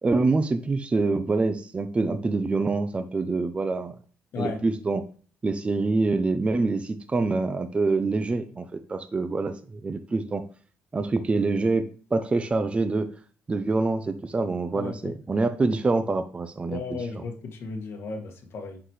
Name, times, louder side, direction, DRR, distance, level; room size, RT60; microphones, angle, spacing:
voice 1, 0.0-4.0 4.4-5.0 5.4-10.4 10.9-13.1 13.5-17.2, right 3 dB, 25° right, 9 dB, 0.6 m, -26 dB
voice 2, 4.3-4.6 14.7-15.1 16.7-18.8, left 4 dB, 60° left, 2 dB, 1.9 m, -35 dB
7.9 x 5.9 x 3.3 m, 0.42 s
cardioid pair, 105°, 5 cm